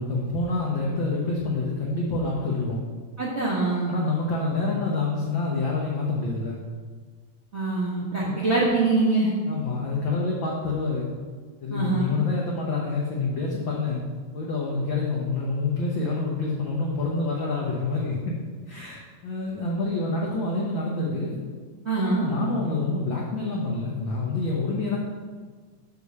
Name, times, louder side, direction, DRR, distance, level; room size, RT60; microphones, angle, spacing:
voice 1, 0.0-2.8 3.9-6.6 8.2-8.3 9.5-11.1 11.6-14.0 14.3-18.4 18.7-21.4 22.2-25.0, left 3 dB, 70° left, -3 dB, 1.1 m, -27 dB
voice 2, 3.2-3.9 7.5-9.3 11.7-12.1 21.8-22.3, right 3 dB, 40° right, -7 dB, 0.9 m, -24 dB
6.7 x 4.8 x 6.6 m, 1.5 s
omnidirectional pair, 3.4 m